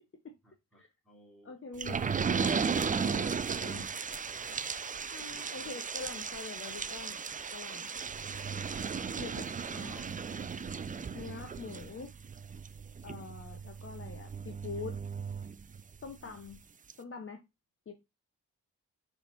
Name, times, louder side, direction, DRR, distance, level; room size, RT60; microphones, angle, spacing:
voice 1, 0.4-3.2 3.5-3.9 4.2-4.7 5.5-5.9 9.8-10.6 16.2-16.5, equal, ahead, 3.0 m, -59 dB
voice 2, 1.4-2.0 3.1-3.9 5.1-7.2 7.5-8.0 9.2-9.5 9.7-10.0 11.1-12.1 13.0-15.0 16.0-16.6 17.0-17.4 17.9-18.0, left 4 dB, 40° left, 1.0 m, -44 dB
sound 1, 1.8-16.1 16.5-16.6 16.9-17.0, right 6 dB, 25° right, 0.4 m, -36 dB
5.7 x 3.6 x 2.6 m
supercardioid pair, 50°, 34 cm